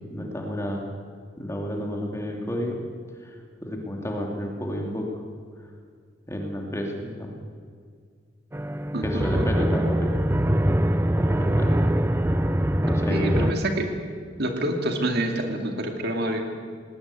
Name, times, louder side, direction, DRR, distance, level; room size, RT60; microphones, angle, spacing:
voice 1, 0.1-0.9 1.4-2.8 3.2-3.3 3.6-5.1 6.3-7.3 9.0-10.2 11.2-11.8 12.8-13.5, left 1 dB, 15° left, 0 dB, 3.0 m, -30 dB
sound 1, 8.5-13.5, right 1 dB, 10° right, 0.6 m, -23 dB
voice 2, 8.9-9.4 13.1-13.9 14.4-16.4, right 1 dB, 55° right, 4 dB, 2.3 m, -27 dB
19.5 x 19.0 x 8.2 m, 2.1 s
head